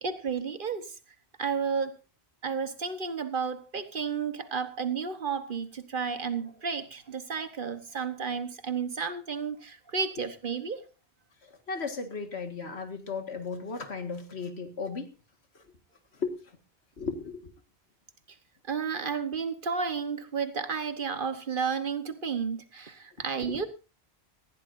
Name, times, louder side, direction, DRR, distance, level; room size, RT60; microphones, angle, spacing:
voice 1, 0.0-0.9 1.4-2.0 2.4-10.8 18.7-23.7, right 5 dB, 55° right, 1.4 m, -32 dB
voice 2, 11.4-15.1 15.5-15.7 16.1-16.6 17.0-17.5 23.5-23.6, left 4 dB, 85° left, 2.2 m, -36 dB
19.0 x 15.5 x 2.7 m
omnidirectional pair, 1.1 m